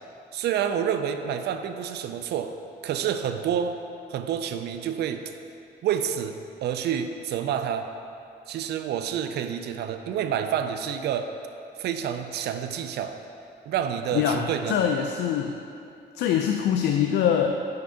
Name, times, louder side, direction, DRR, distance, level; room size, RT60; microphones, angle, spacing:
voice 1, 0.3-2.5 2.8-3.8 4.1-5.2 5.8-7.9 8.5-11.3 11.8-13.2 13.7-14.8, right 8 dB, 65° right, 8 dB, 0.4 m, -28 dB
voice 2, 14.1-15.6 16.1-17.7, left 8 dB, 75° left, 4 dB, 0.4 m, -24 dB
5.8 x 5.2 x 5.0 m, 2.6 s
cardioid pair, 115°, 18 cm